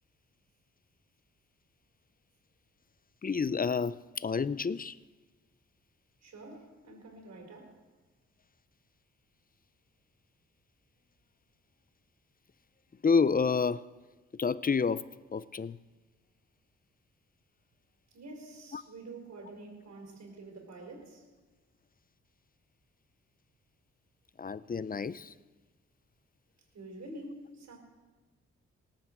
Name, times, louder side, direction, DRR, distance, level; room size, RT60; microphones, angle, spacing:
voice 1, 3.2-5.0 13.0-13.8 14.4-15.8 18.7-18.8 24.4-25.3, left 5 dB, 30° left, 0.6 m, -29 dB
voice 2, 6.2-7.8 18.1-21.2 26.7-27.8, right 2 dB, 65° right, 4.8 m, -47 dB
18.5 x 8.3 x 7.9 m
supercardioid pair, 50°, 29 cm